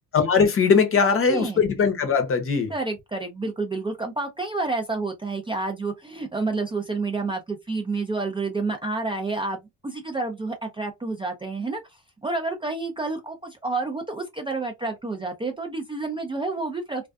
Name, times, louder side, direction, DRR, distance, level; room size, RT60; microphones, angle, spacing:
voice 1, 0.1-2.7, left 5 dB, 40° left, 0.7 m, -20 dB
voice 2, 1.0-1.6 2.7-17.1, right 3 dB, 15° right, 0.4 m, -29 dB
2.4 x 2.2 x 2.3 m
cardioid pair, 105°, 34 cm